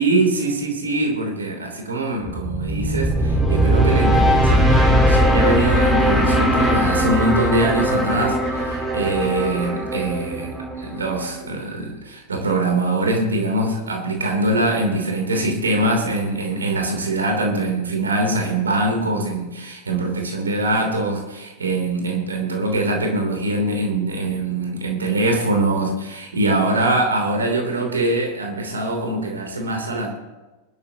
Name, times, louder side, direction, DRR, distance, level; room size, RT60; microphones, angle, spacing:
voice 1, 0.0-30.1, right 2 dB, 70° right, 2 dB, 3.2 m, -23 dB
sound 1, 2.3-11.4, equal, 5° right, 4.4 m, -19 dB
21.0 x 12.5 x 2.9 m, 1.1 s
figure-of-eight pair, 90°, 0 cm